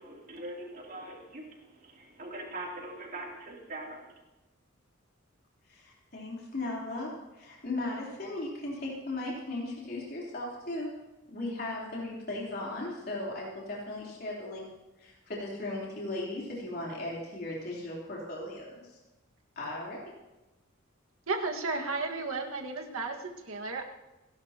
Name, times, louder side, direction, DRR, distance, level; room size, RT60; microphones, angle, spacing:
voice 1, 0.0-1.4 1.9-4.0, right 1 dB, 45° right, -2 dB, 3.2 m, -41 dB
voice 2, 5.7-10.9 11.3-14.7 15.0-19.0 19.6-20.1, left 2 dB, 50° left, -4 dB, 3.7 m, -37 dB
voice 3, 21.3-23.8, right 3 dB, 90° right, 2 dB, 1.8 m, -33 dB
28.5 x 11.5 x 3.0 m, 1.1 s
head